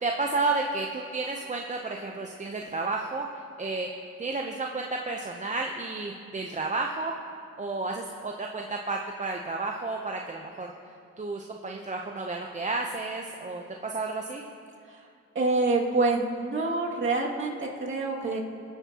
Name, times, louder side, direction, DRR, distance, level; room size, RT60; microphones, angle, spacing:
voice 1, 0.0-3.3 3.6-3.9 4.2-7.2 7.6-10.7 11.2-14.4, right 3 dB, 25° right, 1 dB, 0.8 m, -31 dB
voice 2, 15.3-18.4, right 3 dB, 40° right, -2 dB, 2.3 m, -26 dB
20.5 x 9.3 x 2.9 m, 2.4 s
cardioid pair, 90°, 30 cm